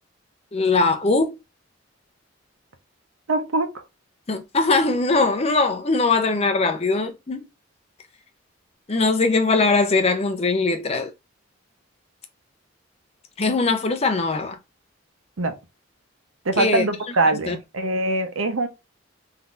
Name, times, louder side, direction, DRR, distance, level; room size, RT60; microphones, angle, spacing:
voice 1, 0.5-1.3 4.3-7.4 8.9-11.1 13.4-14.6 16.6-16.8 17.5-17.6, left 3 dB, 30° left, 0.5 m, -21 dB
voice 2, 3.3-3.8 15.4-15.5 16.4-18.7, right 2 dB, 85° right, 0.8 m, -23 dB
3.6 x 2.8 x 2.4 m
head